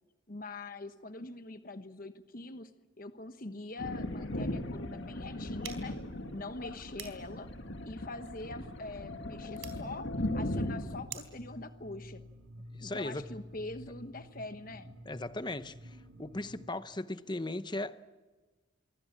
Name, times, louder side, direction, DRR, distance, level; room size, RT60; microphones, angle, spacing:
voice 1, 0.3-6.0 6.3-7.5 7.8-12.2 12.8-14.9, left 2 dB, 45° left, 1.1 m, -44 dB
Thunder, 3.8-11.0, left 1 dB, 60° left, 2.1 m, -38 dB
sound 1, 5.6-11.5, right 11 dB, 70° right, 3.8 m, -51 dB
sound 2, 6.8-16.7, equal, 85° right, 3.6 m, -53 dB
voice 2, 12.7-13.3 15.0-18.1, left 2 dB, 20° left, 0.8 m, -38 dB
26.0 x 23.5 x 7.4 m
head